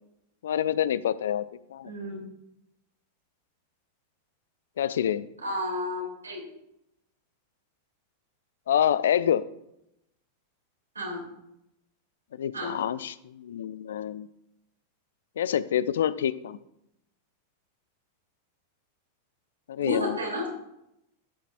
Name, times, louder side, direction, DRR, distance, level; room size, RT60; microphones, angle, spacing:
voice 1, 0.4-1.4 1.7-1.9 4.8-5.3 8.7-9.4 12.4-14.3 15.4-16.6 19.7-20.2, left 10 dB, 70° left, 16 dB, 0.4 m, -27 dB
voice 2, 1.8-2.2 5.4-6.4 10.9-11.2 12.5-12.8 19.8-20.5, left 1 dB, 85° right, -1 dB, 3.2 m, -31 dB
12.5 x 8.2 x 2.6 m, 0.82 s
figure-of-eight pair, 95°, 0 cm